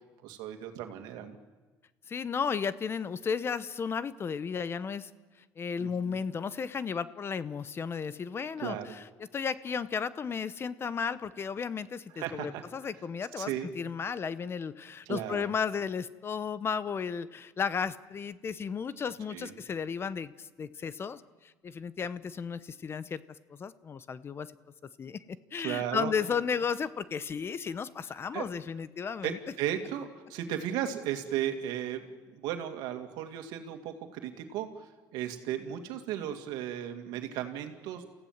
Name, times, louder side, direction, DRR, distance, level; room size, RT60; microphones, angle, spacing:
voice 1, 0.2-1.4 5.8-6.2 8.6-8.9 12.1-12.6 13.4-13.7 15.1-15.4 19.3-19.5 25.6-26.1 28.3-28.5 29.2-34.9 35.1-38.2, right 10 dB, 80° right, 6 dB, 2.2 m, -35 dB
voice 2, 2.1-5.1 5.6-9.1 9.3-23.2 23.5-24.5 25.0-29.4, left 6 dB, 35° left, 15 dB, 0.9 m, -34 dB
28.5 x 15.5 x 7.4 m, 1.3 s
supercardioid pair, 100°, 7 cm